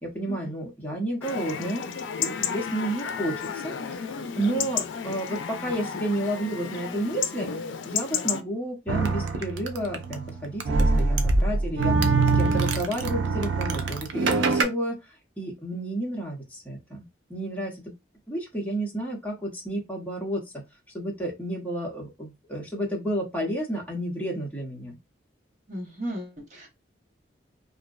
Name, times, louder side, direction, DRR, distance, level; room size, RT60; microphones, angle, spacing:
voice 1, 0.0-1.9 2.2-7.5 7.8-15.0 15.4-17.0 17.3-17.8 18.3-20.4 20.9-25.0, right 1 dB, 10° left, -2 dB, 0.7 m, -31 dB
Chatter / Livestock farm animals working animals / Chirp tweet, 1.2-8.4, left 7 dB, 90° left, 0.4 m, -32 dB
sound 1, 8.9-14.6, right 3 dB, 85° right, 0.4 m, -24 dB
voice 2, 25.7-26.7, equal, 40° right, -1 dB, 0.9 m, -35 dB
2.6 x 2.1 x 2.4 m, 0.23 s
head